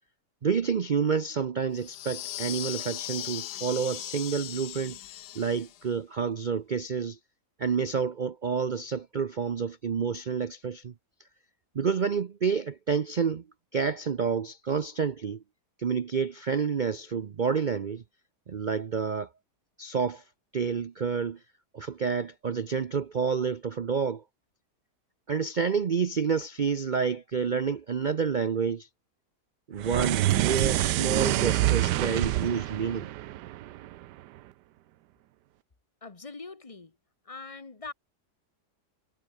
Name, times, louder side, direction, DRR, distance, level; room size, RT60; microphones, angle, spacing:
voice 1, 0.4-5.0 5.3-7.2 7.6-10.9 11.7-13.4 13.7-15.4 15.8-18.0 18.5-19.3 19.8-20.2 20.5-21.4 21.7-24.2 25.3-28.9 29.7-33.1, right 6 dB, 70° right, 0.4 m, -29 dB
sound 1, 1.8-5.8, left 14 dB, 70° left, 1.1 m, -38 dB
sound 2, 29.8-34.2, right 15 dB, 85° right, 1.2 m, -27 dB
voice 2, 36.0-36.9 37.2-37.9, left 4 dB, 20° left, 1.4 m, -42 dB
omnidirectional pair, 1.8 m